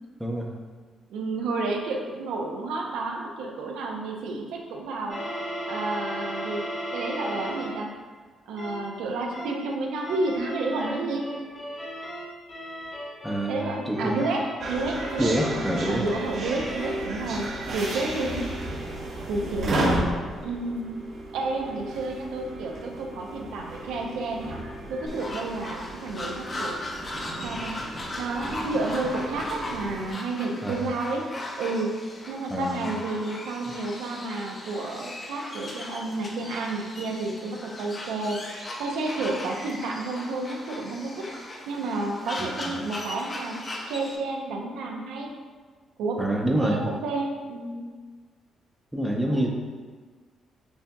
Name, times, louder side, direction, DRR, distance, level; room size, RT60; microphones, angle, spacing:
voice 1, 1.1-5.3 5.7-6.6 6.9-7.9 8.5-11.2 13.5-15.3 15.9-18.5 19.3-19.8 20.4-21.0 21.3-24.5 24.9-26.8 27.4-27.7 28.2-31.3 31.6-32.0 32.3-41.2 41.7-43.6 43.9-45.3 46.0-46.3 46.5-47.8 49.2-49.5, right 2 dB, 90° right, 0 dB, 0.5 m, -30 dB
sound 1, 5.1-7.8 8.6-8.9 9.3-9.7 10.0-17.1, equal, 60° left, 1.4 m, -36 dB
voice 2, 13.2-13.6 13.9-14.1 15.2-16.0 19.6-20.2 30.6-30.9 32.5-32.8 42.4-42.8 46.2-46.9 48.9-49.5, right 1 dB, ahead, 0 dB, 0.6 m, -26 dB
sound 2, 14.6-30.1, right 2 dB, 60° right, 0.8 m, -34 dB
sound 3, 25.1-44.2, left 1 dB, 35° left, 0.7 m, -38 dB
6.9 x 2.6 x 2.2 m, 1.5 s
cardioid pair, 90°, 0 cm